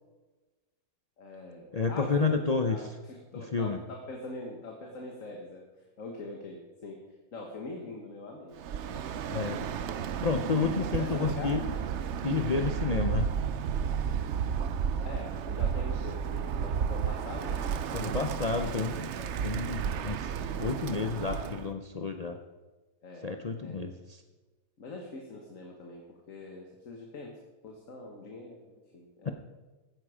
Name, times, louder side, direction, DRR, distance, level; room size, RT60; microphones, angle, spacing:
voice 1, 1.2-5.6 6.0-7.1 7.3-8.5 8.9-9.7 10.0-10.5 10.9-11.7 14.6-18.2 19.2-19.4 23.0-23.3 23.6-23.9 24.8-27.4 27.6-29.3, left 2 dB, 50° left, 1 dB, 1.8 m, -43 dB
voice 2, 1.7-2.8 3.5-3.8 9.3-9.6 10.2-11.6 12.2-13.3 17.9-19.1 19.4-22.4 23.2-23.9 29.2-29.3, left 4 dB, 80° left, 5 dB, 0.3 m, -30 dB
Bird, 8.6-21.7, right 7 dB, 60° right, 0.7 m, -32 dB
16.0 x 9.3 x 5.0 m, 1.2 s
omnidirectional pair, 1.8 m